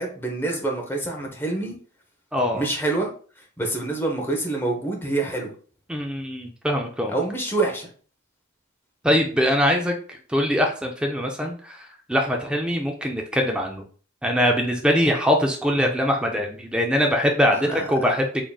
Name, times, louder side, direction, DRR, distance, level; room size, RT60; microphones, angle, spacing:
voice 1, 0.0-1.7 2.5-3.1 3.6-5.5 7.1-7.9 17.5-17.8, right 2 dB, 10° left, 0 dB, 0.8 m, -26 dB
voice 2, 2.3-2.6 5.9-7.2 9.0-13.8 14.2-18.4, equal, 5° right, 2 dB, 0.4 m, -23 dB
3.7 x 3.7 x 2.3 m, 0.42 s
head